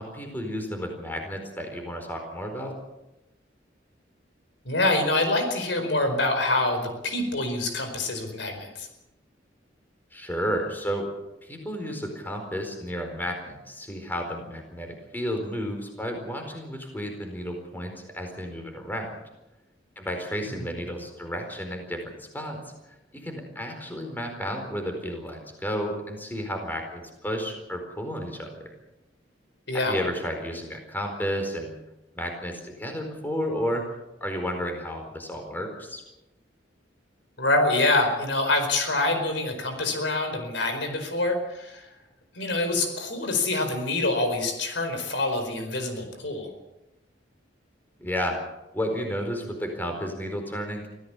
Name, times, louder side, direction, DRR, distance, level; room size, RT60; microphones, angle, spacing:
voice 1, 0.0-2.8 10.1-11.1 11.4-19.2 20.0-28.7 29.8-31.7 32.1-33.9 34.2-36.0 48.0-48.4 48.7-50.9, equal, 10° left, 4 dB, 4.4 m, -32 dB
voice 2, 4.6-8.9 29.7-29.9 37.4-41.9 42.3-46.5, left 2 dB, 75° left, 6 dB, 4.8 m, -26 dB
25.0 x 16.0 x 7.3 m, 0.95 s
head